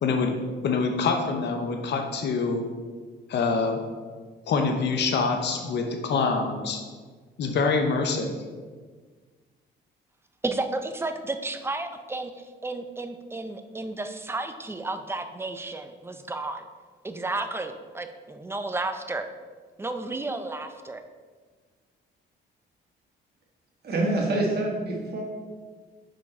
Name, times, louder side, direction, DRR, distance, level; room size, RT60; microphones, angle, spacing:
voice 1, 0.0-2.7 3.3-3.8 4.5-6.8 7.4-8.3, left 4 dB, 60° left, 4 dB, 0.8 m, -25 dB
voice 2, 10.4-16.7 17.0-19.3 19.8-21.0, right 2 dB, 10° right, 7 dB, 0.5 m, -32 dB
voice 3, 23.8-25.3, right 2 dB, 55° right, -2 dB, 1.8 m, -26 dB
6.1 x 4.5 x 4.3 m, 1.5 s
cardioid pair, 90°, 20 cm